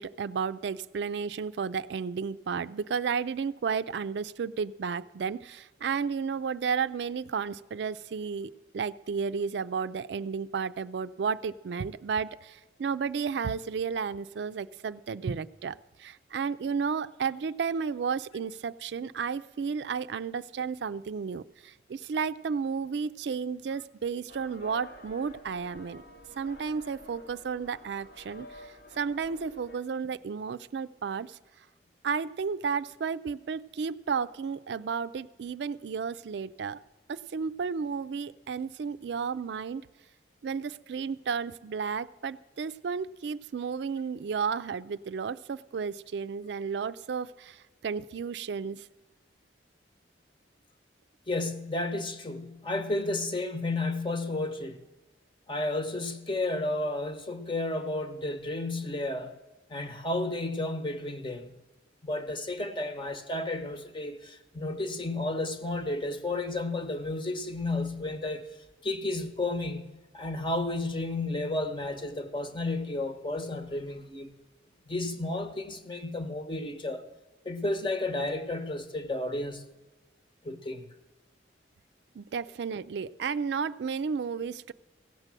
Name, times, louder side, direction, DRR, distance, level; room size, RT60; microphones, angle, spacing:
voice 1, 0.0-26.0 26.4-31.4 32.0-36.8 37.1-39.8 40.4-48.9 82.2-84.7, right 6 dB, 75° right, 0.4 m, -33 dB
sound 1, 24.3-29.8, left 1 dB, 70° left, 1.8 m, -50 dB
voice 2, 51.3-54.8 55.5-59.3 59.7-61.5 62.0-68.4 68.8-74.3 74.9-77.0 77.4-79.6 80.4-80.8, left 2 dB, 30° left, 0.9 m, -32 dB
16.5 x 6.4 x 7.5 m
head